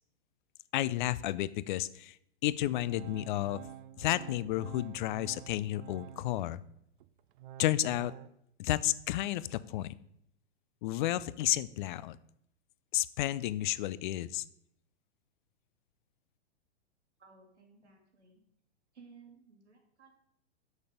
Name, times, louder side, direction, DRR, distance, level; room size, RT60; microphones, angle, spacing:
voice 1, 0.7-2.2 2.4-3.6 4.0-6.6 7.6-8.1 8.6-10.0 10.8-12.2 12.9-14.4, left 14 dB, 45° left, 17 dB, 0.4 m, -32 dB
Organ, 2.7-6.5 7.0-8.3, right 12 dB, 50° right, 0.5 m, -49 dB
voice 2, 17.2-18.4 18.9-20.1, right 5 dB, 85° right, 1 dB, 2.4 m, -58 dB
6.8 x 6.4 x 5.1 m, 0.74 s
hypercardioid pair, 115°, 34 cm